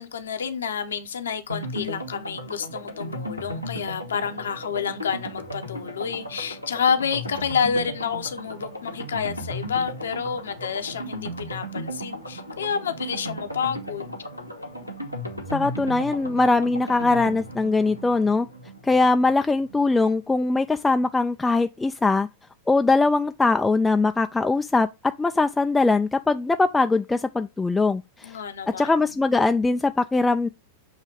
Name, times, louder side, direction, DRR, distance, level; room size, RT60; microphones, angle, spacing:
voice 1, 0.0-14.1 28.2-28.9, left 7 dB, 65° left, 0.8 m, -29 dB
sound 1, 1.5-20.1 20.4-20.5 20.7-20.8, equal, 90° left, 1.2 m, -36 dB
voice 2, 15.5-18.5 18.8-22.3 22.7-28.4 28.7-30.5, left 3 dB, 10° left, 0.3 m, -21 dB
7.3 x 3.2 x 4.8 m
figure-of-eight pair, 90°, 0 cm